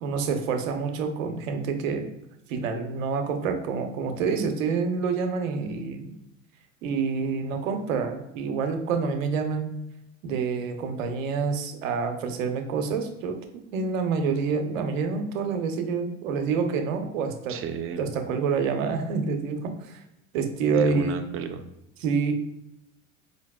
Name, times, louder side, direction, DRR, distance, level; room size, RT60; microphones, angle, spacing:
voice 1, 0.0-2.1 2.5-6.2 6.8-9.7 10.2-13.4 13.7-17.6 18.0-20.0 20.3-21.2 22.0-22.3, right 5 dB, 85° right, 6 dB, 0.7 m, -27 dB
voice 2, 17.5-18.0 20.7-21.6, right 7 dB, 35° right, 7 dB, 0.5 m, -33 dB
4.5 x 2.6 x 2.2 m, 0.86 s
hypercardioid pair, 80°, 39 cm